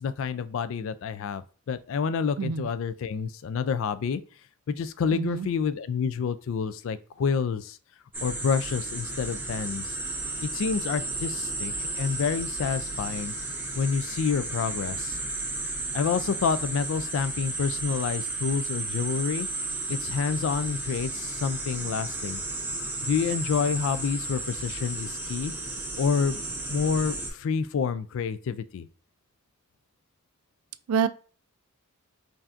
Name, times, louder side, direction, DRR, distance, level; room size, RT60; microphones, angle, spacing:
voice 1, 0.0-4.2 4.7-7.8 8.2-10.0 10.4-13.3 13.8-15.2 15.9-19.5 19.9-22.4 23.0-25.5 26.0-26.4 26.7-28.9, left 6 dB, 60° left, 0.3 m, -28 dB
voice 2, 2.4-2.7 5.1-5.5 30.9-31.1, right 6 dB, 75° right, 0.3 m, -26 dB
sound 1, 8.1-27.3, right 2 dB, 10° right, 0.6 m, -33 dB
5.6 x 2.6 x 2.4 m
head